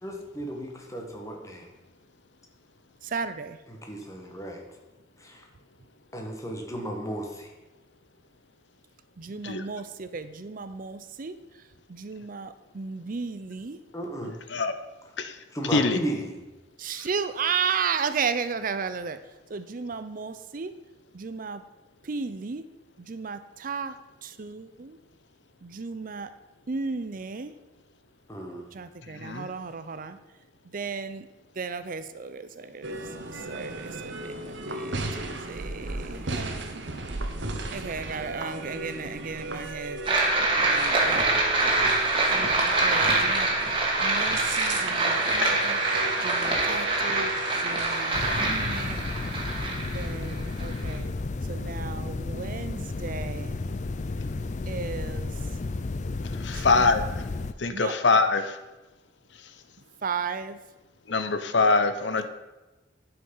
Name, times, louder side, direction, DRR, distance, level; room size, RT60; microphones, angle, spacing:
voice 1, 0.0-1.7 3.7-4.7 5.2-5.5 6.1-7.5 13.9-14.3 15.5-16.4 28.3-28.7, right 1 dB, 15° left, 1 dB, 1.6 m, -35 dB
voice 2, 3.0-3.6 9.2-11.4 11.9-13.8 16.8-19.2 19.5-20.7 21.1-21.6 22.0-22.6 23.1-23.9 24.2-25.0 25.6-26.3 26.7-27.5 28.7-30.2 30.7-31.3 31.6-33.0 33.3-36.8 37.7-40.0 40.7-41.4 42.3-43.5 44.0-49.1 49.8-51.1 51.5-53.6 54.7-55.3 56.5-56.9 57.7-58.0 60.0-60.6, right 5 dB, 50° right, 11 dB, 0.5 m, -34 dB
sound 1, 32.8-48.4, right 2 dB, 80° right, 1.1 m, -36 dB
sound 2, 40.0-51.0, right 2 dB, 30° right, 2.1 m, -25 dB
sound 3, 48.1-57.5, left 3 dB, 40° left, 0.5 m, -32 dB
voice 3, 56.4-57.0 57.6-58.4 61.1-62.3, left 3 dB, 70° left, 9 dB, 0.8 m, -23 dB
10.5 x 5.9 x 5.5 m, 1.1 s
head